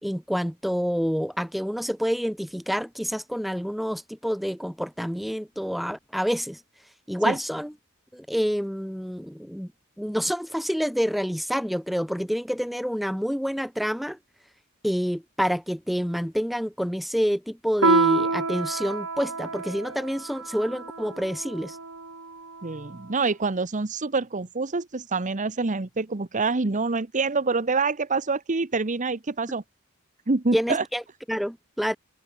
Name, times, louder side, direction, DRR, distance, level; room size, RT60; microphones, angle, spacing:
voice 1, 0.0-6.6 7.1-7.7 8.1-9.7 10.0-14.2 14.8-21.8 30.5-31.0 31.3-32.0, equal, ahead, 3.5 m, -28 dB
Piano, 17.8-22.8, right 3 dB, 75° right, 6.1 m, -27 dB
voice 2, 22.6-29.6 30.3-30.8, right 3 dB, 35° right, 1.0 m, -26 dB
open air
head